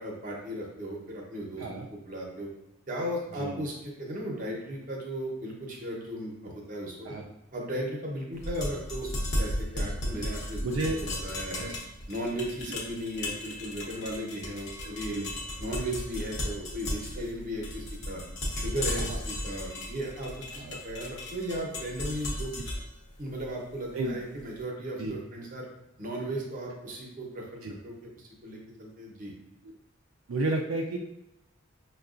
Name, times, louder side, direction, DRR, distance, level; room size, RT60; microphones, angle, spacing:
voice 1, 0.0-1.7 1.9-2.5 2.9-7.1 7.5-9.1 9.4-11.7 12.1-15.3 15.6-18.2 18.6-22.7 23.2-25.6 26.0-28.1 28.4-29.3, right 1 dB, 40° right, -1 dB, 0.8 m, -36 dB
sound 1, 8.4-24.4, left 1 dB, 60° left, 0.8 m, -35 dB
voice 2, 10.6-11.0 11.6-11.7 14.8-15.3 17.2-17.3 19.0-19.2 20.6-20.8 23.9-24.4 25.0-25.1 27.6-27.7 30.3-31.0, right 2 dB, 75° right, 0 dB, 0.4 m, -32 dB
5.5 x 2.3 x 2.4 m, 0.89 s
head